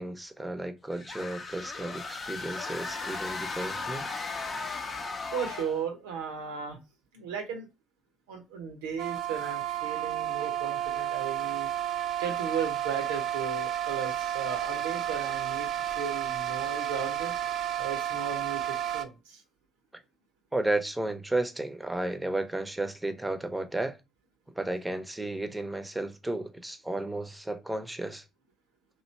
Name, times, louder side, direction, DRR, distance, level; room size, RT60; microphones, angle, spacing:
voice 1, 0.0-4.1 19.9-20.0 20.5-24.0 24.5-28.2, right 2 dB, 10° right, 0.7 m, -33 dB
sound 1, 0.9-5.9, left 3 dB, 40° left, 0.7 m, -36 dB
voice 2, 5.3-6.8 7.1-7.7 8.3-15.7 15.9-17.3 17.8-19.4, right 6 dB, 75° right, 0.8 m, -36 dB
sound 2, 9.0-19.1, right 11 dB, 55° right, 0.4 m, -31 dB
3.1 x 2.7 x 4.2 m
figure-of-eight pair, 45°, 0 cm